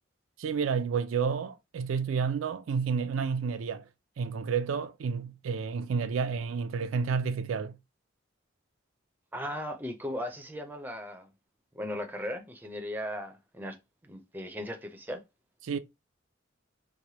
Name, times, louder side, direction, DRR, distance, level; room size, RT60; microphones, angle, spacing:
voice 1, 0.4-3.9 4.2-7.8 15.6-15.8, right 5 dB, 80° right, 0.4 m, -30 dB
voice 2, 9.3-11.3 11.7-13.8 14.0-15.2, equal, 10° right, 0.5 m, -37 dB
3.1 x 2.1 x 2.7 m
head